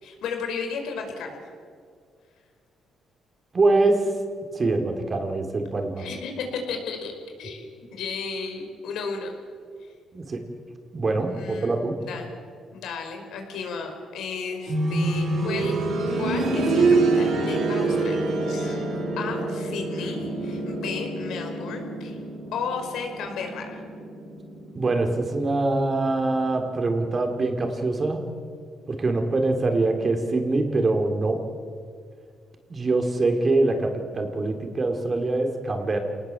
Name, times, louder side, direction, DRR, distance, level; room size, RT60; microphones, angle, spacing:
voice 1, 0.0-1.4 6.0-7.1 7.4-9.4 11.3-12.3 12.7-15.7 16.2-18.2 18.5-22.2 22.5-23.8 29.0-29.2, left 5 dB, 80° left, 3 dB, 5.1 m, -34 dB
voice 2, 3.5-4.1 4.5-6.1 10.1-10.4 10.9-12.0 24.8-28.2 28.9-31.4 32.7-36.0, right 2 dB, 35° right, 4 dB, 3.8 m, -24 dB
sound 1, 14.7-25.4 25.7-25.8 26.7-26.8, right 3 dB, 65° right, 7.7 m, -26 dB
28.0 x 19.5 x 7.6 m, 2.1 s
cardioid pair, 90°, 0 cm